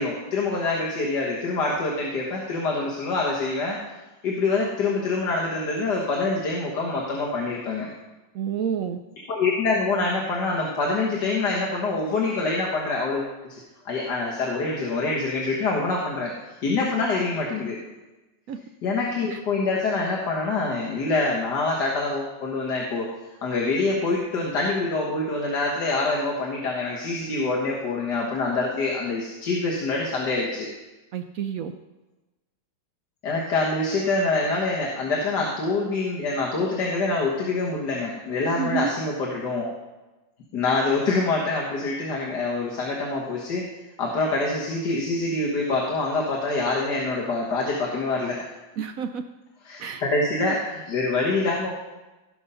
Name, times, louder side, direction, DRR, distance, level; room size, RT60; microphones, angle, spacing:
voice 1, 0.0-3.8 4.2-7.9 9.3-13.6 13.9-16.3 16.6-17.8 18.8-23.1 23.4-30.7 33.2-39.7 40.5-43.7 44.0-48.5 49.6-51.7, left 3 dB, 60° left, -3 dB, 1.9 m, -25 dB
voice 2, 8.3-9.0 18.5-18.6 19.3-19.4 31.1-31.7 38.6-38.9 48.8-49.2 49.8-50.0 50.5-50.6, right 8 dB, 80° right, 7 dB, 0.7 m, -29 dB
16.0 x 5.6 x 5.6 m, 1.1 s
omnidirectional pair, 2.1 m